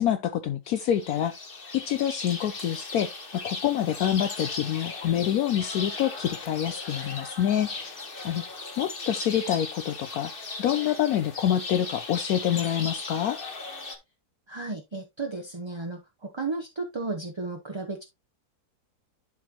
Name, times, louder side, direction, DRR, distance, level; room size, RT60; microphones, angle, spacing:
voice 1, 0.0-1.3 1.7-8.0 8.2-8.4 8.8-10.3 10.6-13.4, left 10 dB, 70° left, 1.0 m, -27 dB
sound 1, 0.7-14.0, left 3 dB, 35° left, 1.4 m, -37 dB
voice 2, 14.5-18.0, right 3 dB, 25° right, 0.7 m, -34 dB
11.0 x 4.3 x 2.8 m
omnidirectional pair, 1.7 m